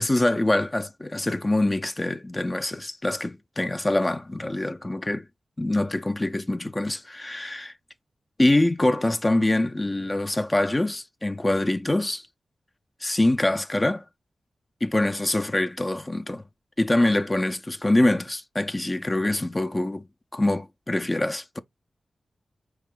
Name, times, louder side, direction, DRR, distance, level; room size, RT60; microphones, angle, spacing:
voice 1, 0.0-5.2 5.6-7.7 8.4-12.2 13.0-14.0 14.8-16.4 16.8-20.1 20.3-21.6, left 1 dB, 25° left, 0.6 m, -24 dB
4.5 x 3.1 x 3.6 m
cardioid pair, 45°, 0 cm